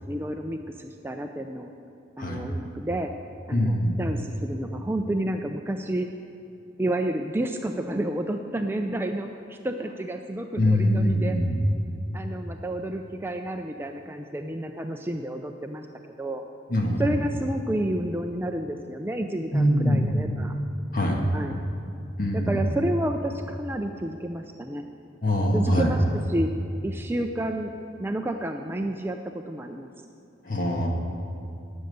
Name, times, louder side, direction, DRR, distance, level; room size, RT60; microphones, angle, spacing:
voice 1, 0.1-1.7 2.2-3.1 3.5-6.1 6.8-11.4 12.1-15.9 16.2-16.4 17.0-20.5 21.3-21.6 22.3-24.9 25.5-26.5 26.8-27.7 28.0-29.9, right 1 dB, 10° right, 4 dB, 0.4 m, -30 dB
voice 2, 3.5-4.0 10.6-11.6 16.7-17.0 19.5-20.2 20.9-21.2 22.2-22.6 25.2-25.9 30.4-30.9, equal, 45° left, 0 dB, 1.8 m, -23 dB
12.0 x 7.8 x 9.4 m, 2.6 s
head